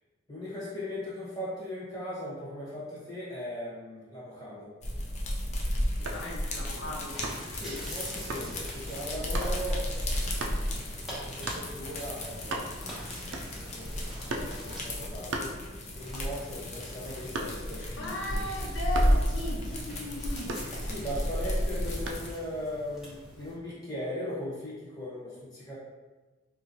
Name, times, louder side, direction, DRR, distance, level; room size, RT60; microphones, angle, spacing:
voice 1, 0.3-4.7 7.6-10.5 11.2-13.0 13.5-13.9 14.2-18.5 20.9-25.7, left 1 dB, 20° left, -9 dB, 1.3 m, -39 dB
sound 1, 4.8-22.3, equal, 35° left, 0.5 m, -33 dB
voice 2, 6.0-7.2 17.8-20.5, equal, 70° left, -4 dB, 1.0 m, -37 dB
sound 2, 6.0-6.3 7.2-7.6 8.3-8.5 9.3-9.6 10.4-10.6 11.5-11.7 12.1-12.2 12.4-12.9 13.3-13.7 14.3-14.6 15.3-16.1 16.4-17.8 18.9-19.3 20.5-21.2 22.1-22.3, right 2 dB, 65° right, 0.5 m, -36 dB
sound 3, 7.1-14.9 15.9-23.5, equal, ahead, 1.0 m, -45 dB
4.4 x 2.5 x 2.8 m, 1.2 s
head